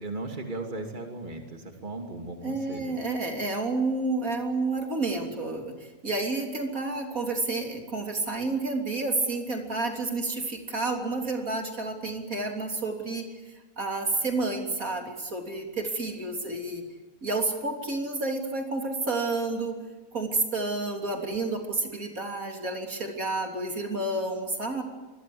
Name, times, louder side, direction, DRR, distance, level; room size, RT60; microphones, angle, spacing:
voice 1, 0.0-2.9, right 2 dB, 30° right, 4 dB, 3.0 m, -37 dB
voice 2, 2.4-16.8 17.2-19.8 20.1-24.8, right 3 dB, 70° right, 3 dB, 3.8 m, -30 dB
26.5 x 23.0 x 8.0 m, 1.2 s
omnidirectional pair, 1.5 m